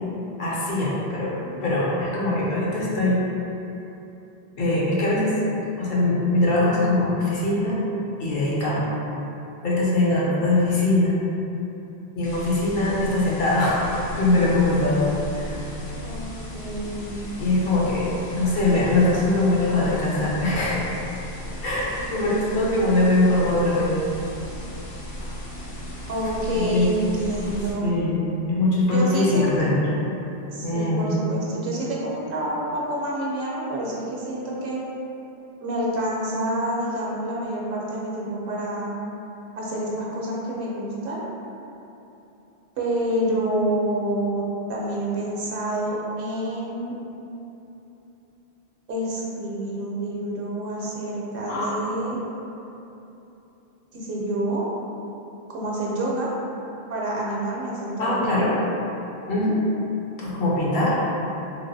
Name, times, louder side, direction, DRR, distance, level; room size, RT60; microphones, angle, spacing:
voice 1, 0.4-1.3 1.6-3.2 4.6-5.3 5.8-7.8 8.2-8.9 9.6-11.2 12.1-13.8 14.2-15.6 17.4-18.0 18.3-20.9 21.6-24.0 26.6-26.9 27.8-29.8 30.6-31.1 51.5-51.7 58.0-58.5 59.3-59.6 60.2-61.0, left 2 dB, 65° left, -6 dB, 0.8 m, -22 dB
sound 1, 12.2-27.7, equal, 50° left, 0.4 m, -36 dB
voice 2, 16.0-17.2 26.1-28.0 28.8-29.5 30.5-34.8 35.6-38.9 39.6-41.2 42.8-46.9 48.9-52.2 53.9-54.7 55.5-56.3 56.9-58.3, right 1 dB, 65° right, -4 dB, 0.7 m, -28 dB
3.2 x 2.4 x 2.6 m, 2.9 s
omnidirectional pair, 1.1 m